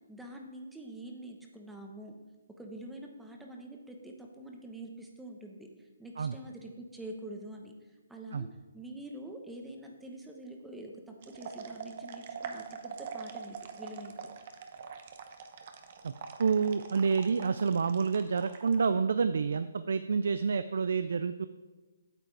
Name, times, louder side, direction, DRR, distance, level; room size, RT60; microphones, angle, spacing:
voice 1, 0.1-2.1 2.6-5.7 6.0-7.7 8.1-8.5 8.7-14.3, right 1 dB, 5° right, 1 dB, 1.0 m, -46 dB
sound 1, 11.2-18.9, right 6 dB, 45° right, 0.9 m, -44 dB
voice 2, 16.4-21.5, right 5 dB, 70° right, 12 dB, 0.4 m, -28 dB
8.6 x 7.8 x 4.7 m, 1.3 s
hypercardioid pair, 155°, 0 cm